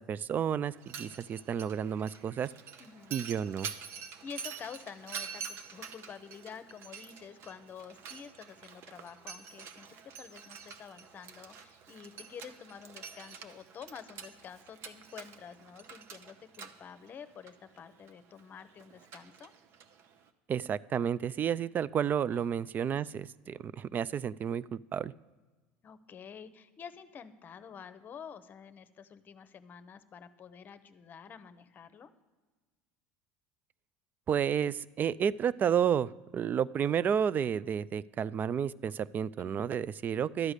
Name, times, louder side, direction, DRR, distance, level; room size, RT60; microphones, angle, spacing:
voice 1, 0.0-2.5 3.1-3.7 20.5-25.1 34.3-40.5, right 8 dB, 35° right, 21 dB, 0.3 m, -31 dB
Mechanisms, 0.7-20.3, right 6 dB, 55° right, 0.8 m, -47 dB
voice 2, 2.8-3.2 3.9-19.5 22.3-22.4 25.8-32.1 39.4-39.7, left 7 dB, 35° left, 13 dB, 0.8 m, -49 dB
12.0 x 4.9 x 8.2 m, 1.3 s
supercardioid pair, 90°, 5 cm